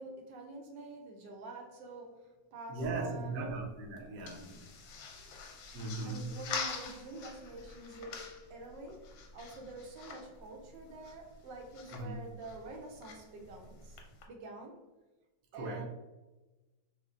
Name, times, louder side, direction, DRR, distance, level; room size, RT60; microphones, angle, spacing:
voice 1, 0.0-3.4 6.0-14.0 14.3-14.8 15.5-15.8, right 2 dB, 75° right, 0 dB, 1.3 m, -47 dB
voice 2, 2.7-4.7 5.7-6.4 11.9-12.2 15.5-15.8, right 3 dB, 60° right, 0 dB, 1.0 m, -38 dB
sound 1, 3.3-14.3, left 5 dB, 90° left, 1.4 m, -46 dB
6.2 x 2.1 x 2.4 m, 1.1 s
omnidirectional pair, 2.1 m